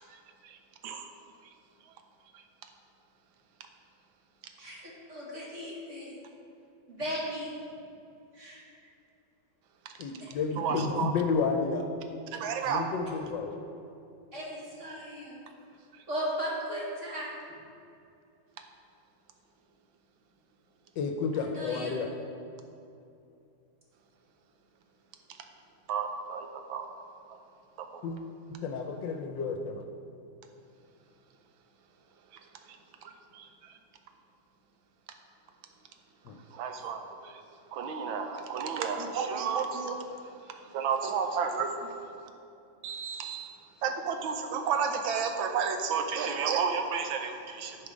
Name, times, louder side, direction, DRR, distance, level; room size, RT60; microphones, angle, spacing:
voice 1, 4.6-6.2 6.9-7.5 8.3-8.6 10.2-10.3 10.7-10.8 12.6-12.7 14.3-15.4 16.1-17.3 21.3-21.9, equal, 40° right, -4 dB, 1.5 m, -37 dB
voice 2, 10.0-11.9 12.6-13.6 21.0-22.1 28.0-28.2 28.5-29.8 36.3-36.4, left 4 dB, 75° left, 5 dB, 1.2 m, -31 dB
voice 3, 10.6-11.1 12.4-12.8 25.9-26.8 36.6-37.0 37.7-40.0 40.7-41.7 42.8-43.5 43.8-47.8, right 6 dB, 85° right, 5 dB, 1.5 m, -31 dB
11.0 x 5.0 x 5.1 m, 2.6 s
omnidirectional pair, 2.1 m